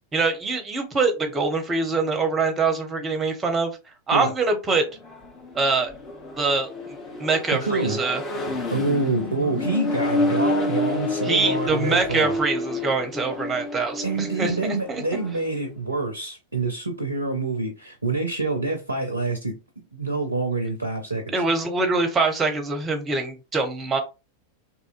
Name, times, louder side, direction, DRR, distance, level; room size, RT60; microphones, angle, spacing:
voice 1, 0.1-4.9 5.5-5.9 6.4-8.2 11.2-15.0 21.3-24.0, right 3 dB, 20° right, 0.7 m, -24 dB
Accelerating revving vroom, 4.9-15.4, left 2 dB, 25° left, 0.8 m, -29 dB
voice 2, 7.5-8.0 8.7-12.4 14.0-19.6 19.9-21.3, right 3 dB, 80° right, 0.4 m, -26 dB
2.7 x 2.5 x 2.4 m
figure-of-eight pair, 90°, 0 cm